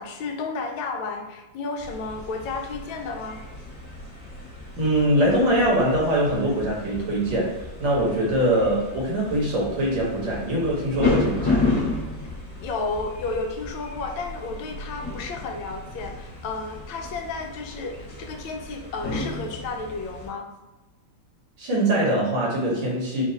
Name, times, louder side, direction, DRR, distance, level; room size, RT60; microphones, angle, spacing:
voice 1, 0.0-3.4 12.6-20.5, left 3 dB, 80° left, 3 dB, 1.4 m, -32 dB
sound 1, 1.8-20.3, left 2 dB, 30° left, 1.3 m, -32 dB
voice 2, 4.8-11.7 21.6-23.2, right 1 dB, 70° right, -4 dB, 2.0 m, -23 dB
4.4 x 2.4 x 4.0 m, 1.1 s
omnidirectional pair, 2.1 m